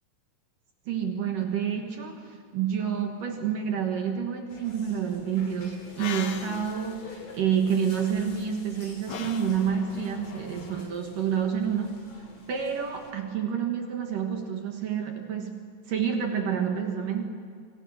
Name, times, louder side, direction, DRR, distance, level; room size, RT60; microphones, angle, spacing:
voice 1, 0.9-12.1 12.5-15.6 15.9-17.3, right 7 dB, 60° right, 4 dB, 2.5 m, -29 dB
sound 1, 4.5-13.1, left 3 dB, 40° left, 3.7 m, -49 dB
sound 2, 5.8-10.8, left 7 dB, 85° left, 1.5 m, -41 dB
26.5 x 25.5 x 6.4 m, 2.2 s
omnidirectional pair, 5.4 m